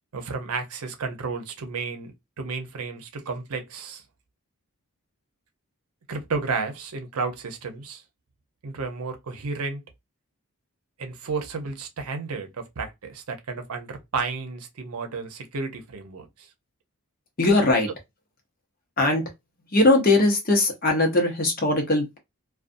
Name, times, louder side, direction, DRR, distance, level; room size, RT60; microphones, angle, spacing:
voice 1, 0.1-4.0 6.1-8.0 8.6-9.8 11.0-16.5, right 4 dB, 80° right, 0.7 m, -32 dB
voice 2, 17.4-17.9 19.0-19.2 19.7-22.2, left 2 dB, 40° left, 0.8 m, -20 dB
2.5 x 2.3 x 2.5 m
head